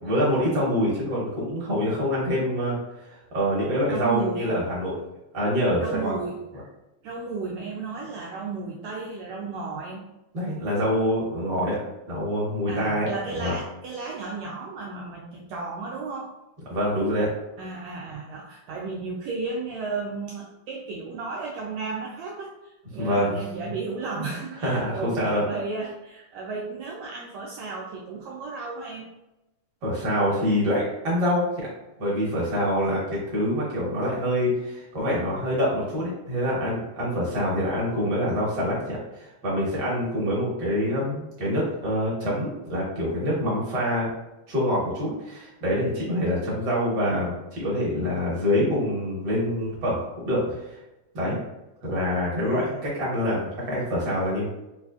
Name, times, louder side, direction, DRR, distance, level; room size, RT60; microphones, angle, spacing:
voice 1, 0.0-2.8 3.3-4.9 5.3-6.2 10.3-11.8 12.1-13.1 13.4-13.5 16.7-17.3 23.0-23.3 24.6-25.4 29.8-31.7 32.0-44.1 44.5-50.7 51.1-51.4 51.8-54.4, equal, 65° right, -6 dB, 1.0 m, -25 dB
voice 2, 3.9-4.5 5.8-6.6 7.0-10.0 12.7-16.3 17.6-22.5 22.9-29.1 52.4-52.8, right 4 dB, 85° right, -2 dB, 1.5 m, -34 dB
5.3 x 2.4 x 2.3 m, 0.94 s
omnidirectional pair, 3.5 m